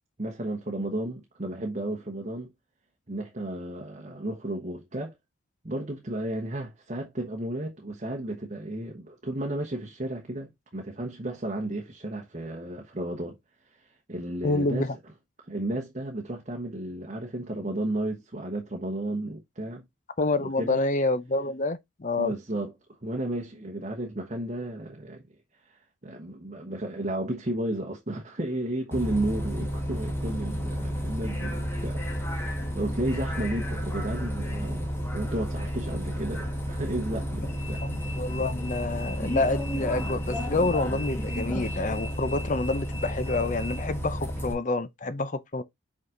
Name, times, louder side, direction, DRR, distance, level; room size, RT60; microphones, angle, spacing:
voice 1, 0.2-2.5 3.1-5.1 5.6-13.4 13.8-14.9 15.5-19.8 20.6-20.8 22.2-22.7 23.0-25.2 25.6-32.0 32.3-37.8, right 1 dB, 35° right, 1.0 m, -33 dB
voice 2, 14.4-14.9 20.2-22.3 37.8-45.6, left 2 dB, 40° left, 0.6 m, -28 dB
Bus, 28.9-44.5, equal, 10° left, 1.4 m, -31 dB
5.5 x 4.7 x 3.7 m
head